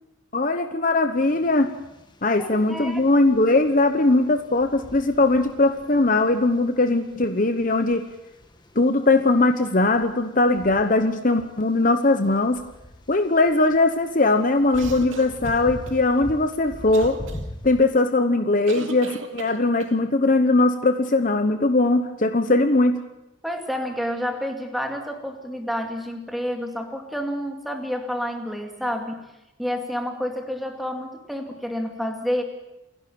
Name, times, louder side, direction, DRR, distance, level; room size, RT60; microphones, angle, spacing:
voice 1, 0.3-1.7 2.2-8.1 8.8-12.6 13.1-17.2 17.6-23.0, left 2 dB, 40° left, 8 dB, 1.0 m, -20 dB
sound 1, 1.2-17.8, equal, 20° left, 1.5 m, -43 dB
voice 2, 2.4-3.1 23.4-29.2 29.6-32.4, equal, ahead, 3 dB, 2.3 m, -29 dB
sound 2, 14.7-16.0 16.9-17.4 18.7-20.0, right 3 dB, 80° right, 2.4 m, -37 dB
28.5 x 11.0 x 8.6 m, 0.93 s
head